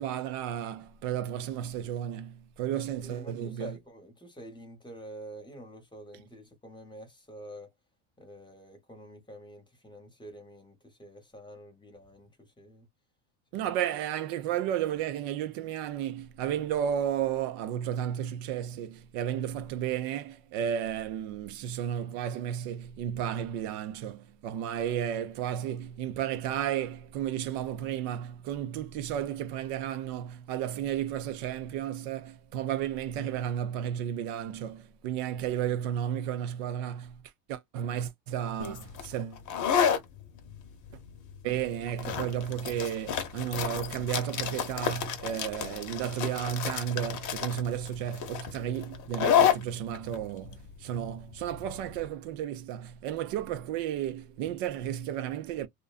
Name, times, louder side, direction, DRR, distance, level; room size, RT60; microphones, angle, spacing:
voice 1, 0.0-3.7 13.5-37.2 37.5-39.4 41.4-55.7, right 10 dB, 70° right, 0.7 m, -33 dB
voice 2, 2.7-7.7 8.2-12.9 35.1-35.2, right 1 dB, 10° left, 0.9 m, -47 dB
sound 1, 38.6-52.0, left 8 dB, 40° left, 0.8 m, -31 dB
2.5 x 2.2 x 2.4 m
supercardioid pair, 115°, 48 cm